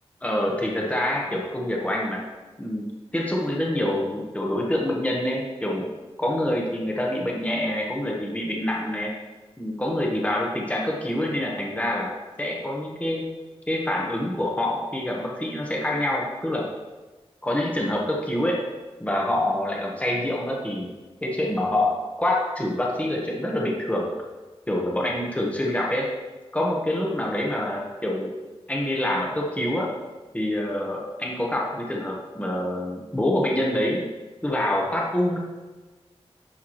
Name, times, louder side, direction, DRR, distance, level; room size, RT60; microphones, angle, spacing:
voice 1, 0.2-2.2 2.6-2.9 3.1-5.9 6.2-9.1 9.6-13.2 13.7-16.7 17.4-18.6 19.0-20.9 21.2-24.1 24.7-26.1 26.5-28.4 28.7-29.9 30.3-34.1 34.4-35.4, left 1 dB, 10° left, -2 dB, 1.2 m, -26 dB
10.0 x 4.7 x 3.1 m, 1.2 s
wide cardioid pair, 75°, 11 cm